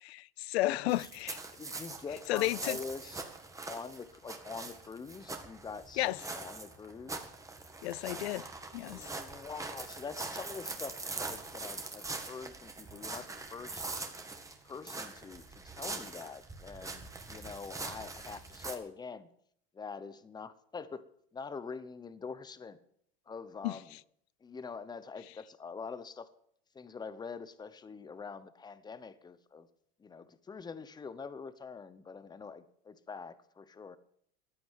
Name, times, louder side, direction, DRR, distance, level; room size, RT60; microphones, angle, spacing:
voice 1, 0.0-1.4 2.3-2.8 6.0-6.2 7.8-8.5 8.7-9.1 23.6-23.8, left 18 dB, 85° left, 0.5 m, -32 dB
voice 2, 0.6-1.0 1.6-3.2 3.7-7.2 8.9-13.8 14.6-19.3 19.7-21.1 21.3-22.8 23.3-24.0 24.4-26.3 26.7-29.7 30.0-34.0, left 5 dB, 15° left, 0.9 m, -45 dB
sound 1, 0.9-18.7, right 3 dB, 10° right, 1.7 m, -43 dB
15.0 x 9.5 x 7.4 m
supercardioid pair, 130°, 31 cm